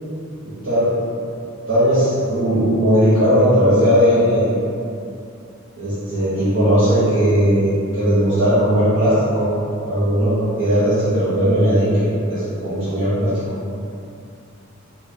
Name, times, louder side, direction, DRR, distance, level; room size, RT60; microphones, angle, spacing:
voice 1, 0.4-0.9 1.7-4.6 5.8-9.5 9.8-13.4, equal, 60° right, -13 dB, 0.8 m, -17 dB
2.3 x 2.1 x 3.6 m, 2.6 s
head